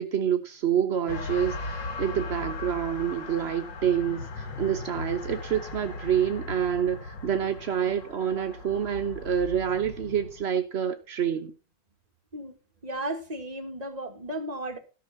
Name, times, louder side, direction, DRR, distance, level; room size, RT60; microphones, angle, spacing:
voice 1, 0.0-11.5, right 8 dB, 60° right, 0.7 m, -27 dB
sound 1, 1.1-10.4, left 2 dB, 65° left, 2.4 m, -38 dB
voice 2, 12.8-14.8, right 1 dB, 20° right, 1.6 m, -34 dB
13.0 x 6.1 x 5.7 m
omnidirectional pair, 2.1 m